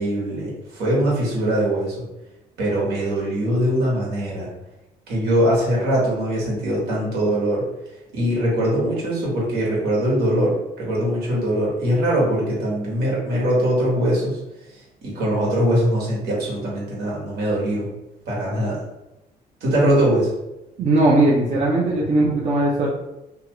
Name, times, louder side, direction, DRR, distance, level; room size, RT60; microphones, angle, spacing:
voice 1, 0.0-1.9 2.6-4.5 5.1-7.6 8.1-14.4 15.0-17.9 18.3-18.8 19.6-20.3, right 1 dB, 75° right, -5 dB, 1.5 m, -22 dB
voice 2, 20.8-22.9, right 2 dB, 45° right, -4 dB, 0.7 m, -19 dB
2.8 x 2.4 x 3.0 m, 0.93 s
cardioid pair, 110°, 17 cm